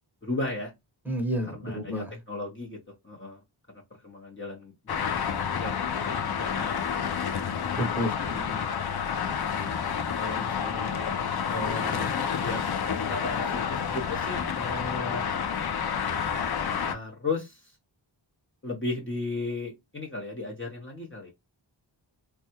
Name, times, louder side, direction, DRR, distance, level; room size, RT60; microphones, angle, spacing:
voice 1, 0.2-0.7 1.5-2.8 3.0-3.4 3.7-5.8 6.1-7.0 8.3-8.7 10.1-11.1 11.5-12.6 13.1-15.2 16.8-17.8 18.6-21.3, left 2 dB, 25° left, 0.8 m, -36 dB
voice 2, 1.1-2.1 7.7-8.6, equal, 5° right, 1.0 m, -31 dB
Traffic noise roadway noise, 4.9-16.9, left 7 dB, 55° left, 0.5 m, -29 dB
3.3 x 2.2 x 2.8 m
wide cardioid pair, 75°, 48 cm